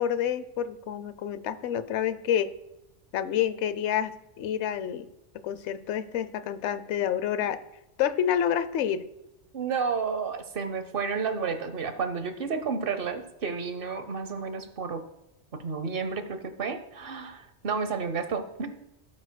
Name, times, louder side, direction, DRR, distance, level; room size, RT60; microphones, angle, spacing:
voice 1, 0.0-2.5 3.1-5.1 5.3-7.6 8.0-9.0, left 9 dB, 75° left, 14 dB, 0.9 m, -28 dB
voice 2, 9.5-15.0 15.5-18.8, right 5 dB, 55° right, 10 dB, 1.0 m, -31 dB
16.5 x 8.7 x 2.2 m, 0.88 s
omnidirectional pair, 1.2 m